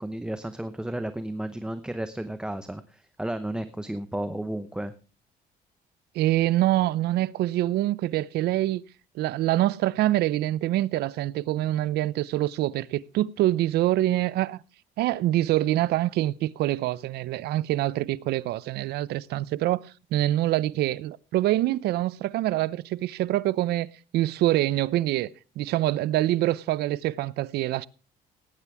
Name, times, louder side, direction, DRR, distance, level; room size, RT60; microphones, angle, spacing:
voice 1, 0.0-4.9, right 1 dB, 5° right, 0.8 m, -33 dB
voice 2, 6.1-8.8 9.1-14.6 15.0-23.9 24.1-25.3 25.6-27.9, right 15 dB, 75° right, 0.6 m, -25 dB
18.0 x 9.7 x 3.5 m
cardioid pair, 110°, 17 cm